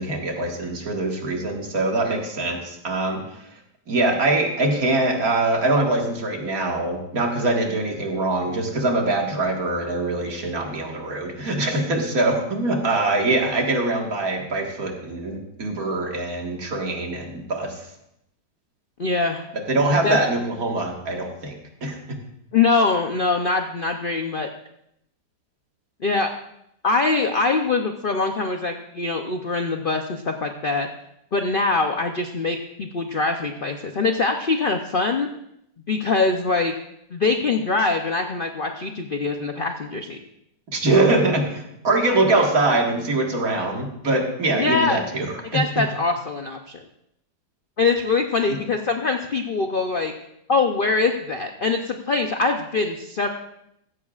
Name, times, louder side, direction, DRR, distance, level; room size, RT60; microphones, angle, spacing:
voice 1, 0.0-3.2 3.9-17.8 19.7-21.6 21.8-22.0 40.7-45.6, right 2 dB, 50° right, 1 dB, 2.1 m, -23 dB
voice 2, 19.0-19.5 20.0-20.2 22.5-24.5 26.0-26.3 26.8-30.9 31.3-35.3 35.9-36.7 37.1-40.2 44.5-45.0 45.5-46.8 47.8-50.1 50.5-53.3, left 3 dB, 80° left, 4 dB, 0.4 m, -23 dB
15.5 x 14.0 x 2.4 m, 0.78 s
omnidirectional pair, 2.0 m